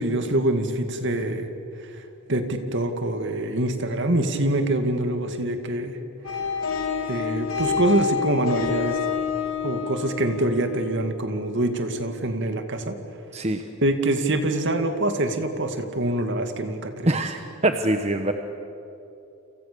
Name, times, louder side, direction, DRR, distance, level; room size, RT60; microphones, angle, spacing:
voice 1, 0.0-1.5 2.3-6.0 7.1-9.0 9.6-13.0 13.8-17.2, right 1 dB, 55° right, 7 dB, 2.3 m, -25 dB
sound 1, 6.2-11.7, left 6 dB, 75° left, 3.2 m, -28 dB
voice 2, 13.3-13.6 17.0-17.4 17.6-18.3, right 2 dB, 30° right, 6 dB, 1.1 m, -23 dB
30.0 x 28.0 x 7.0 m, 2.8 s
head